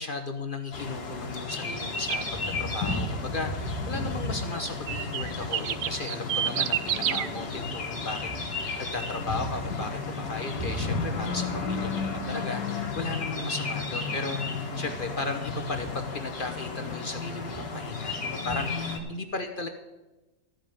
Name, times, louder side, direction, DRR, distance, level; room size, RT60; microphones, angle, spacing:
voice 1, 0.0-2.2 2.6-19.7, left 3 dB, 45° left, 7 dB, 0.8 m, -36 dB
sound 1, 0.7-19.0, left 3 dB, 80° left, 2.0 m, -33 dB
sound 2, 2.1-2.3 4.5-7.3, right 10 dB, 65° right, 0.6 m, -29 dB
13.5 x 5.1 x 9.1 m, 1.1 s
omnidirectional pair, 1.6 m